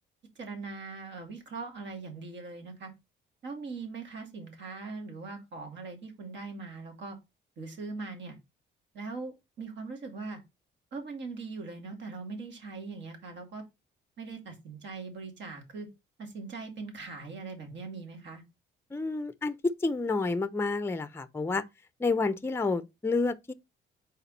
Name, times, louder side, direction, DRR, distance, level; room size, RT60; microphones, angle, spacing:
voice 1, 0.4-2.9 3.4-7.2 7.6-8.4 8.9-10.4 10.9-13.6 14.2-15.9 16.2-18.4, right 4 dB, 65° right, 2.3 m, -41 dB
voice 2, 18.9-21.6 22.0-23.5, left 3 dB, 10° left, 0.5 m, -29 dB
5.7 x 4.1 x 4.0 m
cardioid pair, 90°, 20 cm